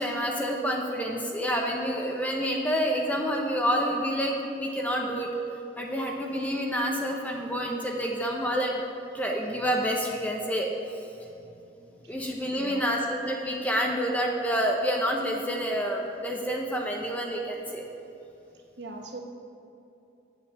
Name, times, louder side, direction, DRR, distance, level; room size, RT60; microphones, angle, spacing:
voice 1, 0.0-5.3 5.8-8.8 9.1-10.7 12.1-17.8, equal, 10° left, 0 dB, 0.9 m, -28 dB
voice 2, 12.6-13.0 18.5-19.2, right 2 dB, 70° right, 2 dB, 1.2 m, -42 dB
8.6 x 7.6 x 7.1 m, 2.8 s
head